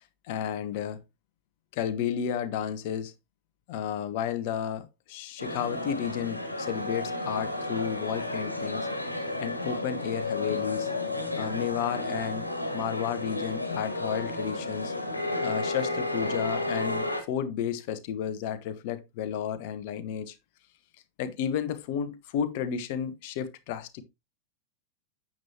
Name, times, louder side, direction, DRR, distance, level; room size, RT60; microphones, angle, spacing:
voice 1, 0.3-1.0 1.7-3.1 3.7-8.9 9.4-10.9 11.3-14.9 15.4-20.4 21.2-24.0, left 9 dB, 50° left, 1.2 m, -32 dB
sound 1, 5.4-17.2, left 2 dB, 85° left, 1.7 m, -32 dB
9.2 x 7.5 x 2.8 m
figure-of-eight pair, 90°, 0 cm